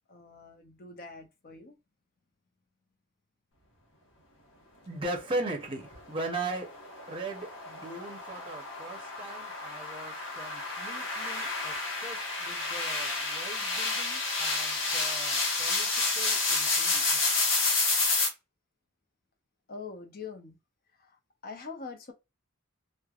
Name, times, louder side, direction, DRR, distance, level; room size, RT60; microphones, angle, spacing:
voice 1, 0.1-1.7 19.7-20.6 21.0-21.2 21.4-22.1, left 4 dB, 45° left, 0.6 m, -43 dB
voice 2, 4.9-6.7 7.1-11.7 12.0-15.9 16.1-17.2, right 2 dB, 25° right, 0.7 m, -39 dB
sound 1, 6.2-18.3, left 3 dB, 60° left, 1.1 m, -30 dB
3.2 x 2.1 x 2.3 m
head